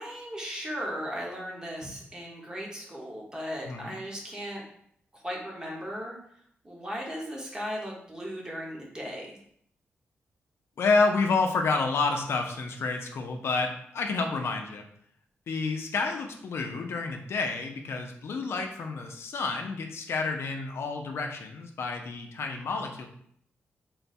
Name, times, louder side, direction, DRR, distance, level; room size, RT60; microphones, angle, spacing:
voice 1, 0.0-4.6 5.1-6.1 6.6-9.4, equal, 15° right, -2 dB, 1.1 m, -37 dB
voice 2, 10.8-14.8 15.5-23.1, left 4 dB, 70° left, 4 dB, 0.5 m, -29 dB
3.8 x 2.2 x 4.2 m, 0.68 s
cardioid pair, 105°, 4 cm